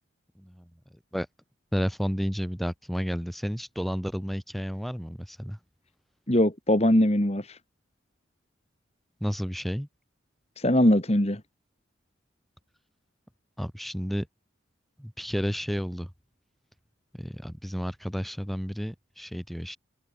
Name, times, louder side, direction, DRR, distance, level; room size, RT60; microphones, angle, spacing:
voice 1, 0.4-0.7 1.1-1.3 1.7-5.6 9.2-9.9 13.6-14.3 15.0-16.1 17.1-19.8, equal, ahead, 4.8 m, -31 dB
voice 2, 6.3-7.6 10.6-11.4, left 1 dB, 30° left, 2.4 m, -21 dB
head